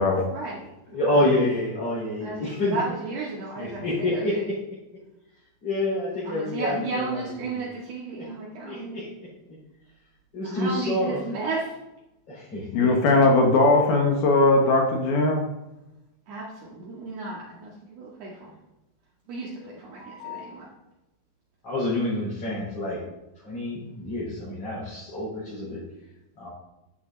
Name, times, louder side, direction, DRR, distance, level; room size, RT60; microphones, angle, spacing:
voice 1, 0.3-1.4 2.2-4.4 6.2-9.0 10.4-11.8 16.3-18.6 19.3-20.7, right 3 dB, 60° right, -5 dB, 3.7 m, -34 dB
voice 2, 0.9-2.8 3.6-4.5 5.6-7.2 8.2-8.3 8.6-9.1 9.5-9.6 10.3-11.2 12.3-12.9 21.6-23.0 23.4-25.8 26.4-26.5, left 1 dB, 30° left, -8 dB, 5.1 m, -27 dB
voice 3, 12.7-15.4 20.0-20.4, left 2 dB, 65° left, 2 dB, 3.1 m, -20 dB
11.5 x 10.5 x 4.1 m, 0.95 s
omnidirectional pair, 5.4 m